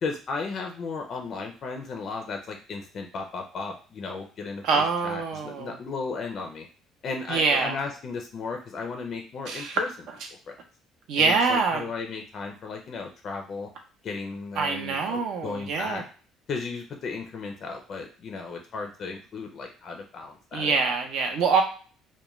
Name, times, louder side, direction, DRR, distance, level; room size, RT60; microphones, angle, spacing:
voice 1, 0.0-6.7 7.0-9.9 10.5-10.6 11.2-13.7 14.0-16.0 16.5-20.8, left 4 dB, 45° left, 3 dB, 0.4 m, -35 dB
voice 2, 4.6-5.8 7.3-7.8 9.5-9.8 11.1-11.9 14.6-16.0 20.5-21.6, right 4 dB, 70° right, 4 dB, 0.5 m, -25 dB
2.3 x 2.1 x 3.0 m, 0.39 s
cardioid pair, 130°, 0 cm